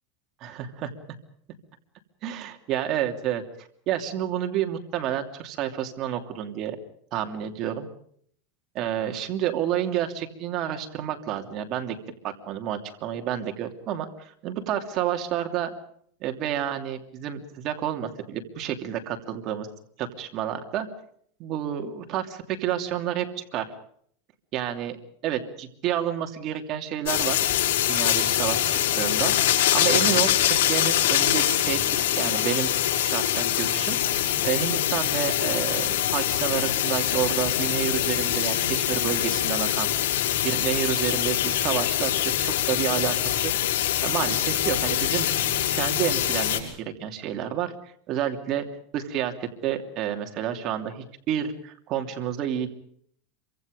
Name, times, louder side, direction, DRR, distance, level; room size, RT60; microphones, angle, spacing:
voice 1, 0.4-0.9 2.2-6.8 7.1-7.9 8.7-12.0 12.2-15.7 16.2-19.7 20.0-20.9 21.4-23.7 24.5-25.0 25.2-27.4 27.9-29.3 29.7-31.8 32.2-32.7 33.0-34.0 34.4-39.9 40.4-43.5 44.0-45.3 45.8-48.6 48.9-52.7, right 10 dB, 35° right, 5 dB, 2.9 m, -29 dB
sound 1, 27.1-46.6, left 12 dB, 80° left, 6.8 m, -24 dB
27.0 x 25.0 x 5.2 m, 0.63 s
supercardioid pair, 160°, 0 cm